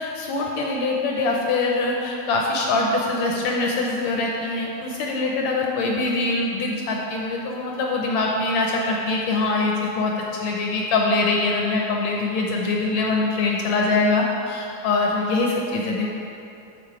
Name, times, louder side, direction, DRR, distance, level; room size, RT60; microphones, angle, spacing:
voice 1, 0.0-10.1 10.4-16.1, left 3 dB, 75° left, -1 dB, 1.7 m, -23 dB
13.5 x 4.5 x 4.8 m, 2.8 s
omnidirectional pair, 3.7 m